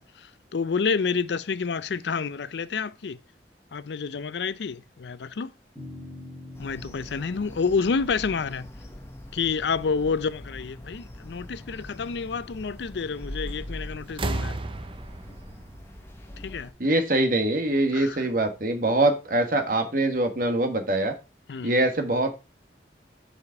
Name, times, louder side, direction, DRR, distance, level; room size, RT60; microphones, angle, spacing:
voice 1, 0.0-3.2 3.7-5.5 6.6-8.7 9.3-14.6 16.4-16.7 17.9-18.2 21.5-21.7, left 5 dB, 80° left, 0.5 m, -29 dB
sound 1, 5.7-12.3, left 1 dB, 10° right, 2.9 m, -47 dB
sound 2, 6.5-16.7, left 1 dB, 15° left, 0.9 m, -42 dB
sound 3, 13.5-13.8 14.1-16.8 18.0-18.1, right 2 dB, 30° right, 0.6 m, -34 dB
voice 2, 16.8-21.2 21.6-22.3, right 2 dB, 50° right, 1.5 m, -23 dB
7.3 x 5.0 x 4.7 m
head